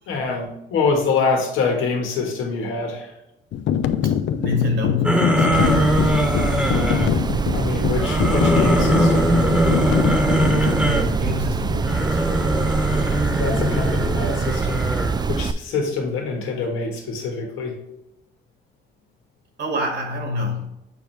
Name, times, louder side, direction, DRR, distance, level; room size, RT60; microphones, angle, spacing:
voice 1, 0.1-3.1 7.5-9.5 13.4-14.8 15.3-17.7, left 4 dB, 85° left, 1 dB, 1.7 m, -25 dB
sound 1, 3.5-10.8, left 9 dB, 70° left, 0.5 m, -24 dB
voice 2, 4.0-6.4 10.6-12.6 19.6-20.7, left 2 dB, 65° right, 2 dB, 2.0 m, -28 dB
sound 2, 5.0-7.1 7.9-11.1 11.8-15.2, equal, 5° right, 1.2 m, -21 dB
sound 3, 5.5-15.5, right 5 dB, 20° right, 0.3 m, -24 dB
6.9 x 4.5 x 3.3 m, 0.84 s
cardioid pair, 90°, 20 cm